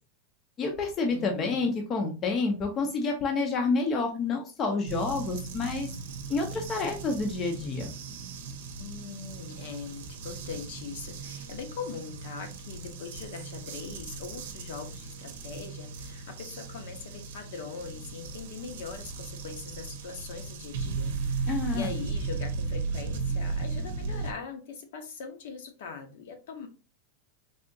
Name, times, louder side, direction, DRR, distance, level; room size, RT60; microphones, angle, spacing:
voice 1, 0.6-5.9 6.3-7.9 21.5-21.9, left 3 dB, 20° left, 0.5 m, -29 dB
voice 2, 1.1-1.8 8.8-26.7, left 5 dB, 65° left, 0.8 m, -41 dB
sound 1, 4.9-24.3, right 4 dB, 70° right, 0.6 m, -36 dB
3.5 x 2.7 x 2.6 m
supercardioid pair, 175°, 0 cm